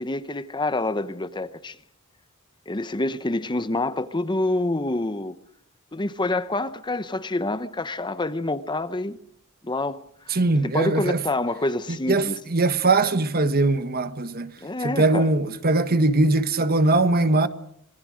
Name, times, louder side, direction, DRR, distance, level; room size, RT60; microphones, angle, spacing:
voice 1, 0.0-1.8 2.7-5.3 5.9-9.2 9.6-10.0 10.3-12.4 14.6-15.3, left 2 dB, 20° left, 0.9 m, -27 dB
voice 2, 10.3-11.2 12.1-14.5 14.8-17.5, right 2 dB, 45° right, 1.3 m, -21 dB
26.0 x 22.5 x 6.4 m
head